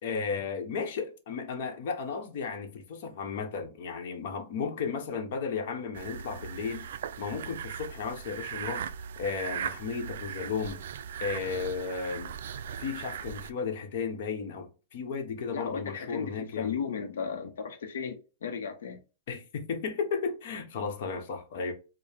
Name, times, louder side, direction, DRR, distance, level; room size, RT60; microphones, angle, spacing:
voice 1, 0.0-6.9 7.2-8.9 9.2-10.8 11.2-12.3 12.8-16.7 19.3-21.7, left 5 dB, 50° left, 0.9 m, -34 dB
sound 1, 5.9-13.5, right 8 dB, 70° right, 0.3 m, -38 dB
voice 2, 15.4-19.0, left 6 dB, 85° left, 0.7 m, -35 dB
4.6 x 2.1 x 3.4 m
supercardioid pair, 165°, 0 cm